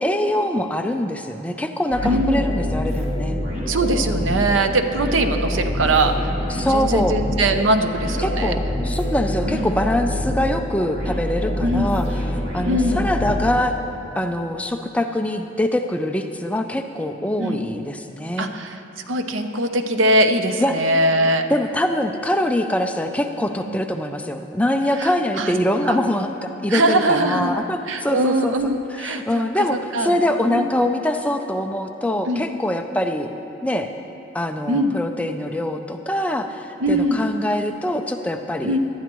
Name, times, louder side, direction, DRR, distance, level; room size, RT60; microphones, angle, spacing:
voice 1, 0.0-3.4 4.3-4.4 6.5-7.2 8.2-12.1 12.5-13.7 14.2-18.5 20.6-20.8 21.5-33.3 33.6-33.9 34.3-38.8, left 1 dB, 5° left, 5 dB, 0.4 m, -23 dB
sound 1, 1.9-14.1, left 1 dB, 50° right, 3.0 m, -26 dB
voice 2, 2.0-2.5 3.7-6.3 6.6-8.5 9.4-9.7 11.6-11.9 12.6-13.0 17.4-17.6 18.4-21.4 23.7-23.8 25.0-25.1 25.4-25.5 25.9-26.0 26.7-27.6 27.9-29.2 29.5-30.2 30.4-30.7 32.3-32.4 34.7-34.9 36.8-37.2 38.6-38.8, right 1 dB, 80° right, 7 dB, 0.8 m, -21 dB
18.0 x 12.0 x 3.1 m, 3.0 s
head